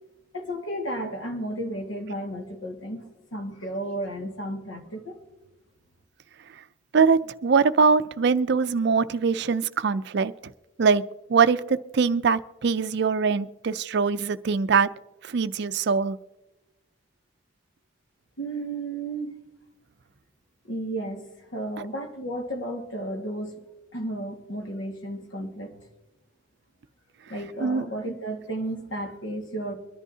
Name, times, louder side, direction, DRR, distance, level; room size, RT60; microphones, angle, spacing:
voice 1, 0.3-5.2 18.4-19.3 20.6-21.3 21.5-23.6 23.9-25.8 27.3-29.7, right 1 dB, 75° left, 1.8 m, -33 dB
voice 2, 6.9-10.3 10.8-14.9 15.2-16.2 27.6-27.9, right 5 dB, 55° right, 0.4 m, -22 dB
23.5 x 11.0 x 2.8 m
head